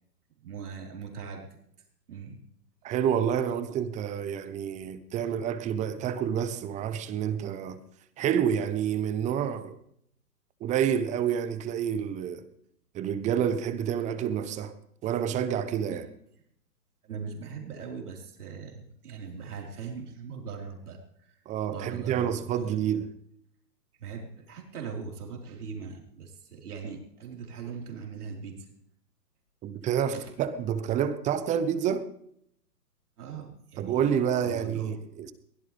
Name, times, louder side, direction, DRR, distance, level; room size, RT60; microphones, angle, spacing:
voice 1, 0.4-1.5 2.1-2.4 15.9-16.0 17.0-22.8 24.0-28.7 30.1-30.3 33.2-34.1 34.4-35.0, right 6 dB, 70° right, 4.6 m, -40 dB
voice 2, 2.8-7.8 8.2-9.8 10.6-12.4 12.9-14.7 15.0-16.1 21.5-23.1 29.6-32.1 33.8-35.3, right 8 dB, 15° right, 0.8 m, -28 dB
22.5 x 16.5 x 3.5 m
hypercardioid pair, 130°, 47 cm